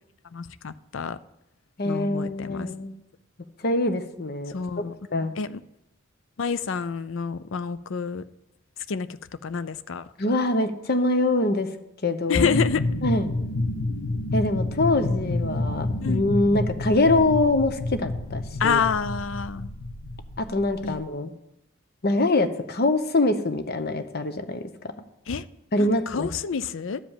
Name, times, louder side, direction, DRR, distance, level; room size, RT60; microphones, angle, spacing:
voice 1, 0.3-1.2 1.8-2.7 4.5-4.9 5.4-5.6 6.4-8.2 8.9-9.1 9.4-10.1 12.3-12.8 16.0-16.3 18.6-19.7 20.8-21.0 25.3-25.4 25.8-27.0, left 6 dB, 65° left, 15 dB, 0.5 m, -28 dB
voice 2, 1.8-2.9 3.6-4.5 5.1-5.4 10.2-11.7 12.0-12.5 13.0-13.3 14.3-18.8 20.4-21.3 22.0-24.6 25.7-26.3, left 2 dB, 50° left, 9 dB, 0.9 m, -24 dB
sound 1, 12.4-21.0, left 2 dB, 85° left, 1.2 m, -29 dB
12.5 x 5.1 x 7.3 m, 0.85 s
head